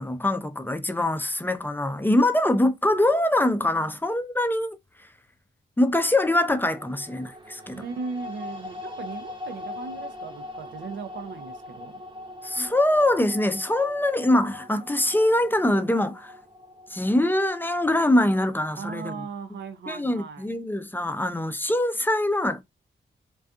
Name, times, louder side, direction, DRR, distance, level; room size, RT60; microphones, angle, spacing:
voice 1, 0.0-4.8 5.8-7.8 12.4-16.3 16.9-19.2 19.9-22.6, left 1 dB, 10° left, 0.4 m, -23 dB
sound 1, 6.4-18.6, left 2 dB, 25° right, 0.8 m, -42 dB
voice 2, 7.7-12.0 18.8-20.5, right 5 dB, 80° right, 0.5 m, -37 dB
2.5 x 2.3 x 2.3 m
cardioid pair, 55°, 19 cm